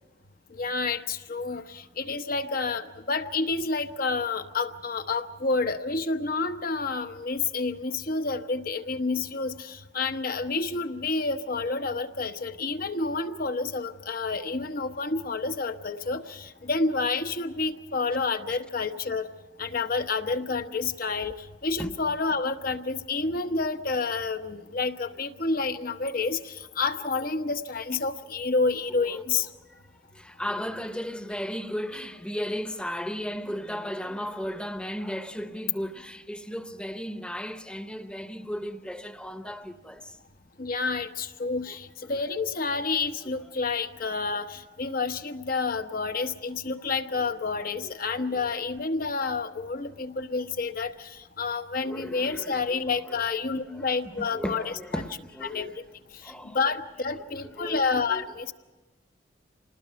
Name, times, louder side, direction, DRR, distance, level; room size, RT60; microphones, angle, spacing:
voice 1, 0.5-19.3 19.6-29.5 40.6-55.0 55.4-55.8 56.2-58.5, left 4 dB, 55° left, 1.1 m, -29 dB
voice 2, 30.1-40.2 47.8-48.2 50.4-50.5 51.8-53.2 53.7-55.8 56.2-56.6 57.2-58.3, equal, 5° left, 1.0 m, -35 dB
27.0 x 20.0 x 5.8 m
head